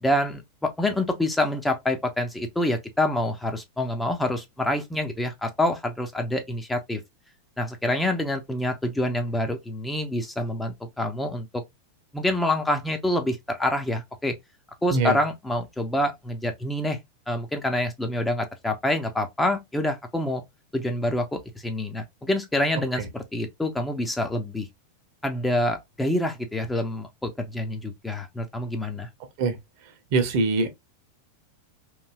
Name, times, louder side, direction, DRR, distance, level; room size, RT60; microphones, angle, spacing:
voice 1, 0.0-7.0 7.6-11.5 12.1-14.3 14.8-17.0 17.3-20.4 20.7-24.7 25.2-29.1, left 1 dB, 5° left, 0.5 m, -27 dB
voice 2, 14.9-15.2 23.0-23.1 29.4-29.6 30.1-30.7, right 3 dB, 45° right, 0.7 m, -23 dB
3.0 x 2.6 x 2.2 m
figure-of-eight pair, 90°, 0 cm